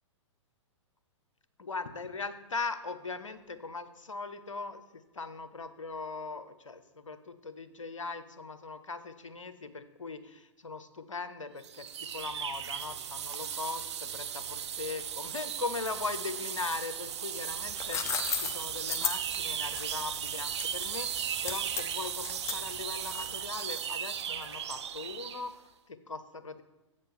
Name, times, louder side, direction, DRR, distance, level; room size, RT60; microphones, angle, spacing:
voice 1, 1.6-26.6, left 4 dB, 85° left, 11 dB, 0.7 m, -40 dB
sound 1, 11.6-25.5, right 9 dB, 60° right, 0.5 m, -36 dB
sound 2, 17.5-23.5, left 6 dB, 15° left, 0.6 m, -36 dB
7.9 x 6.6 x 3.7 m, 1.1 s
figure-of-eight pair, 115°, 16 cm